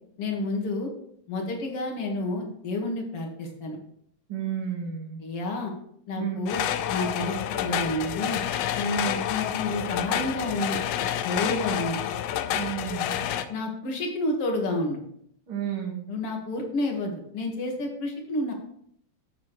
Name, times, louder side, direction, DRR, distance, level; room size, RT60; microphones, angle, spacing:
voice 1, 0.2-0.9 1.3-3.8 5.2-5.7 6.1-6.6 6.9-8.4 8.7-12.0 13.5-15.0 16.1-18.5, left 2 dB, 55° left, 1 dB, 2.6 m, -30 dB
voice 2, 4.3-5.2 6.2-6.4 12.5-13.1 15.5-16.0, right 9 dB, 50° right, -2 dB, 2.6 m, -32 dB
sound 1, 6.5-13.5, left 10 dB, 75° left, 1.6 m, -29 dB
12.0 x 8.1 x 3.2 m, 0.69 s
omnidirectional pair, 3.3 m